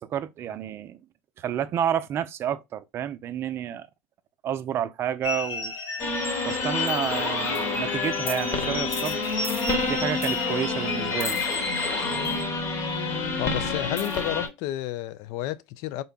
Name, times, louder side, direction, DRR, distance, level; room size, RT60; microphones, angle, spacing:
voice 1, 0.0-1.0 1.4-3.9 4.4-5.7 6.4-9.2 9.9-11.4, right 9 dB, 40° right, 0.4 m, -30 dB
sound 1, 5.2-12.4, left 3 dB, 80° left, 2.2 m, -34 dB
sound 2, 6.0-14.5, left 4 dB, 45° left, 1.1 m, -28 dB
voice 2, 13.4-16.0, left 14 dB, 60° left, 0.3 m, -31 dB
3.7 x 2.2 x 3.8 m
hypercardioid pair, 100°, 6 cm